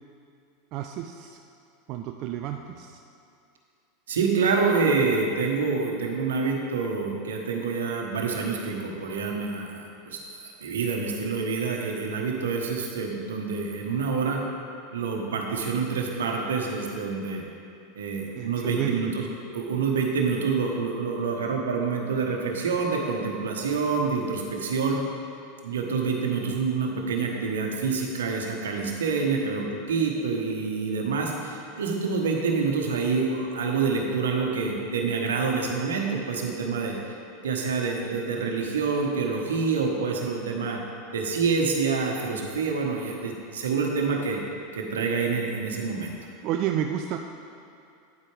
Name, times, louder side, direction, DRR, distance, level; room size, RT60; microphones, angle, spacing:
voice 1, 0.7-1.4 1.9-3.0 18.4-19.1 46.4-47.2, right 10 dB, 50° right, 4 dB, 0.4 m, -30 dB
voice 2, 4.1-10.2 10.6-14.4 14.9-17.4 17.9-19.3 19.5-25.0 25.6-37.1 37.4-40.8 41.1-44.4 44.7-46.1, right 4 dB, 80° right, 1 dB, 1.2 m, -27 dB
9.4 x 8.4 x 3.4 m, 2.6 s
hypercardioid pair, 95°, 0 cm